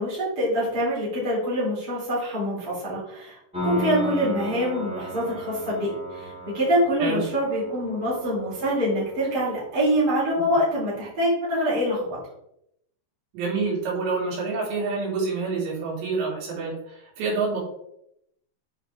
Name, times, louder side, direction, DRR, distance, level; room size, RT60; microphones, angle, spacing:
voice 1, 0.0-12.1, equal, 25° right, -6 dB, 3.0 m, -25 dB
Piano, 3.5-10.3, left 1 dB, 5° right, 0.6 m, -35 dB
voice 2, 13.3-17.6, right 4 dB, 90° right, -5 dB, 4.6 m, -27 dB
8.5 x 4.5 x 3.5 m, 0.77 s
omnidirectional pair, 4.9 m